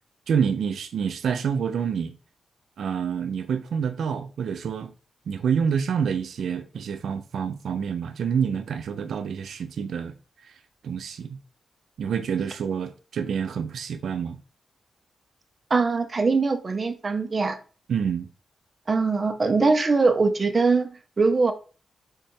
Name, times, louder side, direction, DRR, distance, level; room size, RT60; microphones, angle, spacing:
voice 1, 0.3-2.1 2.8-4.9 5.3-10.2 10.8-11.4 12.0-14.4 17.9-18.3, right 7 dB, 85° right, 0.4 m, -27 dB
voice 2, 15.7-17.6 18.9-21.5, right 4 dB, 30° right, 0.5 m, -22 dB
3.6 x 3.3 x 4.3 m
wide cardioid pair, 175°, 0 cm